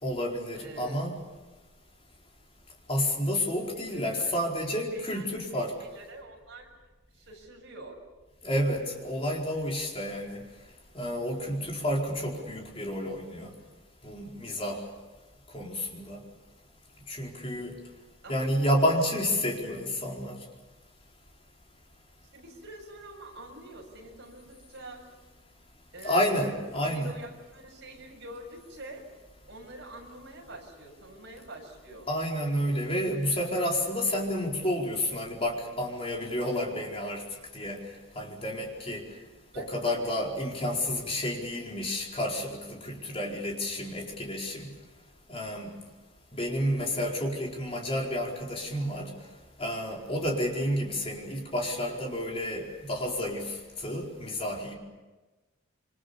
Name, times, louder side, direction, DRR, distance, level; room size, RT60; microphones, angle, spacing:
voice 1, 0.0-1.2 2.9-5.7 8.4-10.4 10.9-13.5 14.0-14.8 15.5-16.2 17.1-17.8 18.3-20.4 26.0-27.2 32.1-37.2 37.5-37.8 38.2-39.1 39.5-44.7 45.3-45.7 46.3-49.1 49.6-54.7, equal, 25° left, -1 dB, 4.6 m, -30 dB
voice 2, 0.5-1.0 3.7-6.7 7.1-8.0 18.2-18.5 18.8-19.6 22.3-25.0 25.9-29.1 29.5-32.1 39.5-40.2, right 1 dB, 55° right, 0 dB, 7.1 m, -46 dB
27.5 x 25.5 x 7.2 m, 1.2 s
head